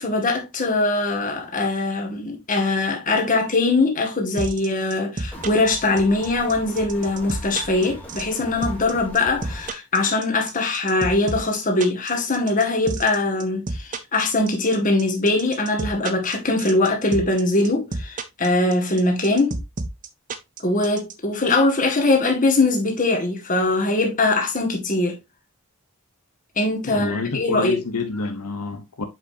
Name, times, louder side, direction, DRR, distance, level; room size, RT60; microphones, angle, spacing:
voice 1, 0.0-19.6 20.6-25.2 26.6-27.8, left 2 dB, 35° left, 1.9 m, -21 dB
sound 1, 4.4-21.1, right 3 dB, 35° right, 0.6 m, -30 dB
sound 2, 5.3-9.7, equal, 5° left, 1.6 m, -39 dB
voice 2, 26.9-29.0, left 4 dB, 85° left, 1.0 m, -28 dB
7.3 x 5.2 x 2.7 m
head